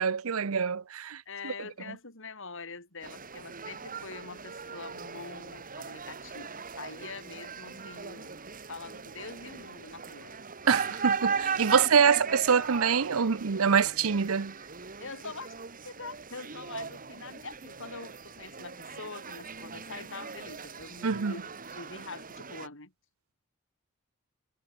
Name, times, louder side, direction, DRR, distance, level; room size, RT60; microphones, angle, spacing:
voice 1, 0.0-1.5 10.7-14.5 21.0-21.3, right 6 dB, 80° right, 0.7 m, -25 dB
voice 2, 1.3-8.4 8.7-10.4 11.7-12.3 15.0-15.5 15.8-22.9, left 4 dB, 65° left, 5.8 m, -44 dB
sound 1, 3.0-22.7, right 5 dB, 40° right, 2.6 m, -38 dB
head